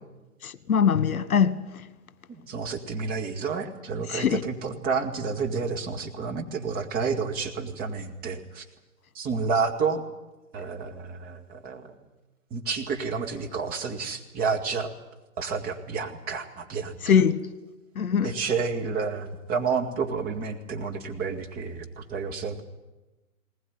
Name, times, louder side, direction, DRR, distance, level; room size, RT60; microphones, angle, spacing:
voice 1, 0.4-1.6 4.1-4.4 17.0-17.4 18.0-18.3, left 7 dB, 70° left, 1.5 m, -22 dB
voice 2, 2.3-8.6 9.1-10.0 10.5-11.9 12.5-14.9 15.4-17.2 18.2-22.6, right 5 dB, 20° right, 2.1 m, -30 dB
20.5 x 19.5 x 9.6 m
hypercardioid pair, 140°, 44 cm